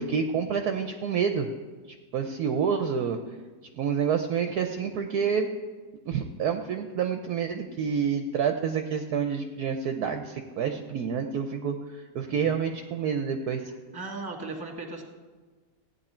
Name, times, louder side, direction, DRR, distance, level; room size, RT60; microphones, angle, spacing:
voice 1, 0.0-1.5 2.1-3.2 3.7-5.5 6.1-13.6, right 7 dB, 65° right, 6 dB, 1.1 m, -28 dB
voice 2, 13.9-15.0, right 3 dB, 15° right, 2 dB, 1.5 m, -37 dB
15.5 x 9.5 x 4.4 m, 1.4 s
omnidirectional pair, 2.0 m